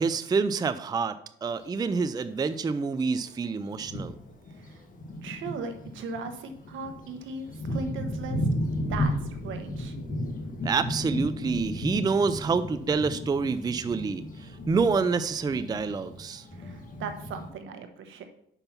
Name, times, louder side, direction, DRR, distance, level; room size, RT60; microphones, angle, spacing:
voice 1, 0.0-4.2 10.6-16.4, right 4 dB, 20° right, 12 dB, 0.4 m, -27 dB
Thunder, 1.5-1.6 2.6-2.7 3.3-3.4 3.7-17.5, left 1 dB, 45° left, 1.6 m, -34 dB
voice 2, 4.5-4.8 5.2-8.5 8.9-10.0 16.5-18.2, right 4 dB, 75° right, 7 dB, 1.1 m, -38 dB
5.7 x 5.4 x 5.8 m, 0.71 s
cardioid pair, 90°, 20 cm